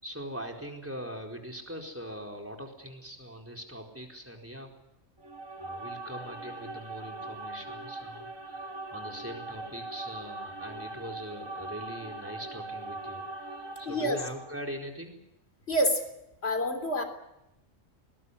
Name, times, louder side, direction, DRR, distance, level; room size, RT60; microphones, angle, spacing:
voice 1, 0.0-4.7 5.6-15.2, equal, 10° right, 2 dB, 4.4 m, -42 dB
sound 1, 5.2-14.7, right 2 dB, 90° right, 2.4 m, -41 dB
voice 2, 13.9-14.2 15.7-16.0 16.4-17.0, equal, 55° left, 7 dB, 3.7 m, -27 dB
21.0 x 19.5 x 9.9 m, 0.86 s
omnidirectional pair, 1.3 m